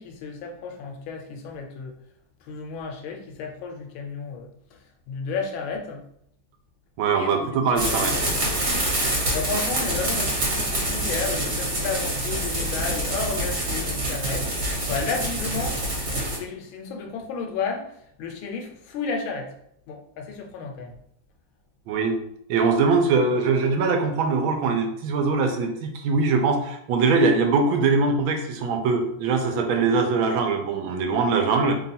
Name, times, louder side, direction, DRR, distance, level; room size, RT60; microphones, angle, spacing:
voice 1, 0.0-1.9 2.5-4.5 5.1-6.0 7.1-8.5 9.3-14.5 14.9-15.9 16.3-17.9 18.2-19.5 19.9-20.9, left 5 dB, 80° left, 3 dB, 1.4 m, -32 dB
voice 2, 7.0-8.3 21.9-22.2 22.5-31.8, right 4 dB, 80° right, 4 dB, 1.4 m, -22 dB
sound 1, 7.8-16.4, right 1 dB, 45° right, 1.5 m, -26 dB
3.5 x 2.3 x 4.0 m, 0.71 s
omnidirectional pair, 2.2 m